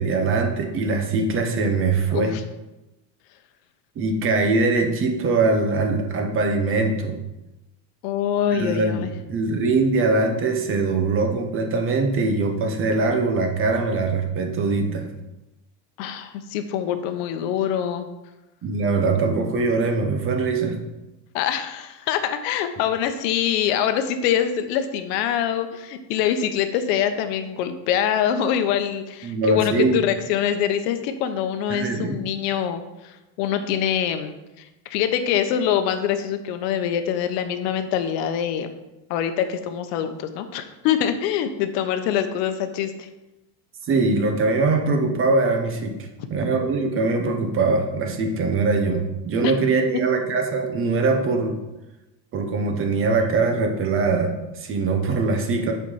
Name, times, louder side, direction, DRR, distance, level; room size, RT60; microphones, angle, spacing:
voice 1, 0.0-2.3 4.0-7.2 8.5-15.1 18.6-20.8 29.2-30.0 31.7-32.2 43.8-45.9 46.3-51.6 52.3-55.7, right 3 dB, 25° right, 4 dB, 0.9 m, -22 dB
voice 2, 2.1-2.4 8.0-9.1 16.0-18.1 21.3-34.3 34.8-38.7 39.1-43.1 49.4-49.5, left 9 dB, 70° left, 8 dB, 1.0 m, -24 dB
8.1 x 4.6 x 5.6 m, 1.0 s
cardioid pair, 165°, 50 cm